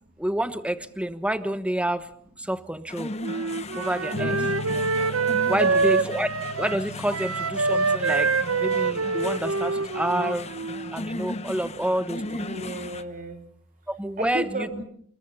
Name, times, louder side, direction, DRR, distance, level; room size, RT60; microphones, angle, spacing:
voice 1, 0.2-2.1 2.4-3.1 3.7-4.9 5.5-6.3 6.6-8.3 8.6-10.5 10.9-12.4 13.9-14.7, right 1 dB, 5° right, 11 dB, 1.2 m, -28 dB
sound 1, 2.9-13.0, left 2 dB, 30° left, 0.9 m, -37 dB
Wind instrument woodwind instrument, 3.2-11.0, right 4 dB, 90° right, 0.9 m, -25 dB
sound 2, 4.1-11.8, left 2 dB, 75° left, 1.0 m, -40 dB
voice 2, 5.6-5.9 12.2-13.4 14.2-14.8, right 1 dB, 40° right, 5 dB, 3.2 m, -33 dB
28.5 x 21.5 x 5.7 m, 0.62 s
head